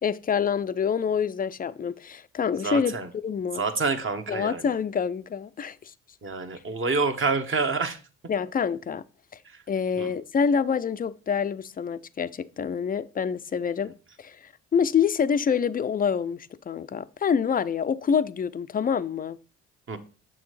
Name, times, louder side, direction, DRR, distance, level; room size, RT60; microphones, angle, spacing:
voice 1, 0.0-2.9 3.2-3.6 4.3-5.9 8.3-9.0 9.7-13.9 14.2-14.4 14.7-19.4, left 7 dB, 25° left, 0.4 m, -26 dB
voice 2, 2.6-3.1 3.5-4.6 6.2-8.0 10.0-10.1 19.9-20.0, right 4 dB, 40° right, 1.0 m, -27 dB
6.5 x 6.1 x 3.2 m
supercardioid pair, 55°, 33 cm